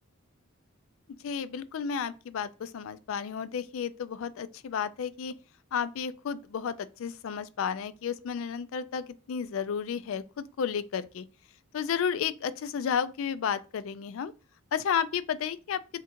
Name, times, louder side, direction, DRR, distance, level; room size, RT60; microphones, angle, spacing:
voice 1, 1.2-5.3 5.7-11.2 11.7-14.3 14.7-15.8, left 7 dB, 65° left, 0.3 m, -32 dB
3.6 x 2.5 x 4.3 m
head